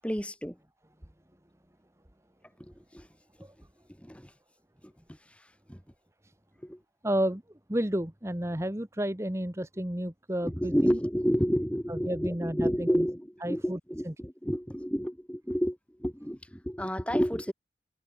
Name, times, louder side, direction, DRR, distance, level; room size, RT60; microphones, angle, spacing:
voice 1, 0.0-0.6 2.9-3.1 4.0-4.3 5.7-5.8 6.6-6.8 10.4-17.5, equal, 5° left, 4.2 m, -30 dB
voice 2, 7.0-7.4 7.7-11.0 11.9-13.0 13.4-13.8 14.0-14.1, right 1 dB, 15° right, 1.3 m, -31 dB
head